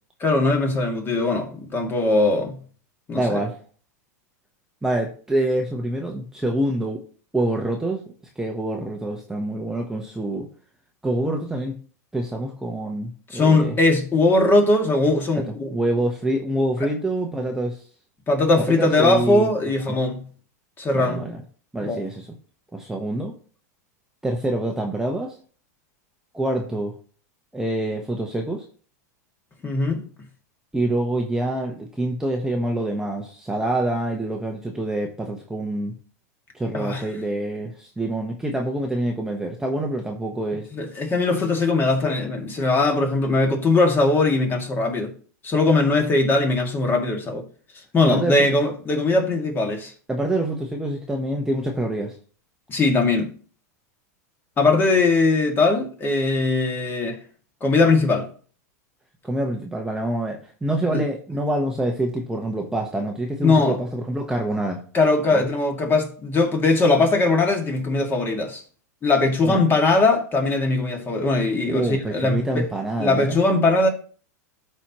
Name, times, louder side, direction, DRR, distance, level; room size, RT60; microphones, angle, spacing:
voice 1, 0.2-2.6 3.1-3.4 13.3-15.7 18.3-20.2 20.8-21.2 21.8-22.0 29.6-30.0 36.7-37.0 40.7-45.1 45.4-47.5 47.9-49.9 52.7-53.3 54.6-57.2 57.6-58.3 60.9-61.0 63.4-63.8 64.9-68.6 69.0-72.7 73.0-73.9, left 3 dB, 25° left, 2.0 m, -20 dB
voice 2, 3.1-3.6 4.8-7.0 7.3-8.0 8.4-10.5 11.0-11.8 12.1-13.8 15.3-15.4 15.7-17.8 18.8-19.5 19.9-20.0 20.9-21.4 21.7-22.3 22.7-23.3 24.2-25.3 26.3-26.9 27.5-28.6 30.7-35.9 36.5-40.7 48.0-48.5 50.1-52.1 59.2-64.8 65.3-65.5 69.5-69.6 71.6-73.4, right 1 dB, 5° right, 1.0 m, -26 dB
13.0 x 4.5 x 3.0 m
hypercardioid pair, 115°, 9 cm